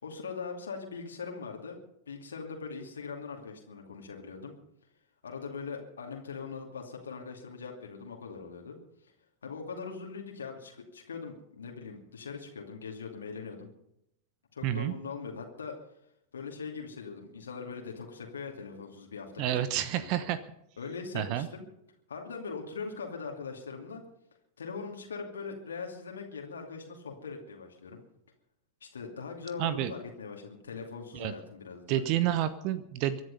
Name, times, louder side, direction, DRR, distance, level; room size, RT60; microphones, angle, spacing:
voice 1, 0.0-1.8 2.1-4.5 5.2-8.8 9.4-13.7 14.5-15.7 16.3-19.6 19.9-20.3 20.8-21.6 22.1-24.0 24.6-28.0 28.8-32.0, left 5 dB, 70° left, 1 dB, 2.6 m, -41 dB
voice 2, 14.6-14.9 19.4-20.4 21.1-21.5 29.6-29.9 31.1-31.3 31.9-33.2, right 12 dB, 45° right, 14 dB, 1.0 m, -29 dB
24.0 x 11.0 x 5.4 m, 0.78 s
figure-of-eight pair, 90°, 0 cm